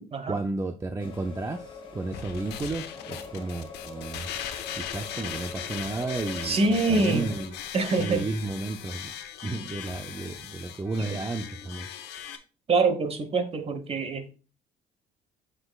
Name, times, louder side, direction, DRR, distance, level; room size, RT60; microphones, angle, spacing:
voice 1, 0.3-4.3 4.8-7.6 8.0-9.1 9.4-11.9, right 3 dB, 15° right, 0.5 m, -33 dB
sound 1, 1.0-7.4, left 4 dB, 30° left, 1.5 m, -43 dB
sound 2, 2.1-12.4, left 9 dB, 80° left, 1.0 m, -39 dB
voice 2, 6.4-7.3 7.7-8.3 11.0-11.2 12.7-14.3, right 3 dB, 35° right, 1.1 m, -25 dB
7.6 x 6.1 x 2.3 m
cardioid pair, 110°, 17 cm